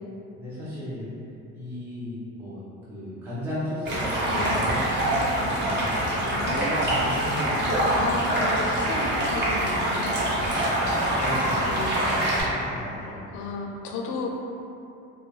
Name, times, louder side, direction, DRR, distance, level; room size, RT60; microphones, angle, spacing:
voice 1, 0.4-1.1 1.5-6.0 6.7-8.0 11.1-11.7 12.1-13.4, left 1 dB, 5° right, -10 dB, 0.4 m, -35 dB
Stream, 3.9-12.4, right 1 dB, 35° right, 0.8 m, -25 dB
voice 2, 6.2-7.1 7.8-10.5 11.7-12.2 13.3-14.3, left 3 dB, 70° left, 0 dB, 0.5 m, -33 dB
2.2 x 2.2 x 3.1 m, 2.8 s
cardioid pair, 125°, 30 cm